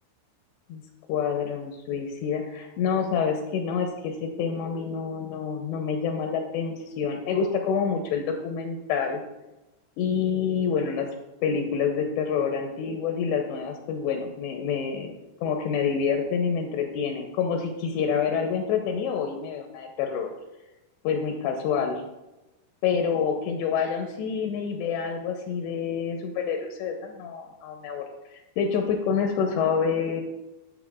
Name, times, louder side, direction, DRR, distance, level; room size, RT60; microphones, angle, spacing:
voice 1, 1.1-9.2 10.0-11.1 11.4-15.1 15.4-20.3 21.0-22.0 22.8-28.0 28.3-30.2, left 6 dB, 80° left, 3 dB, 2.7 m, -27 dB
11.0 x 7.3 x 2.4 m, 0.99 s
omnidirectional pair, 5.2 m